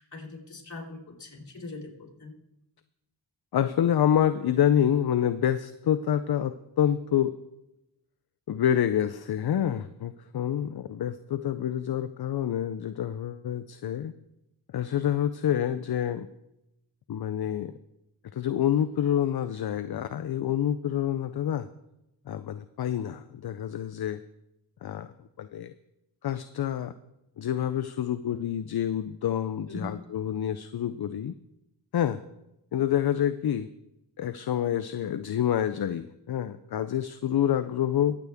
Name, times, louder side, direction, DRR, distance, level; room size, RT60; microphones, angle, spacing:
voice 1, 0.0-2.3 29.7-29.9, left 2 dB, 40° left, -4 dB, 3.3 m, -41 dB
voice 2, 3.5-7.3 8.5-14.1 14.7-16.3 17.1-17.7 18.3-21.7 22.3-24.2 24.8-25.1 25.4-25.7 26.2-26.9 27.4-31.3 31.9-32.2 32.7-33.7 34.2-38.2, left 10 dB, 60° left, 10 dB, 0.5 m, -27 dB
23.0 x 8.2 x 3.5 m, 0.90 s
wide cardioid pair, 110°, 43 cm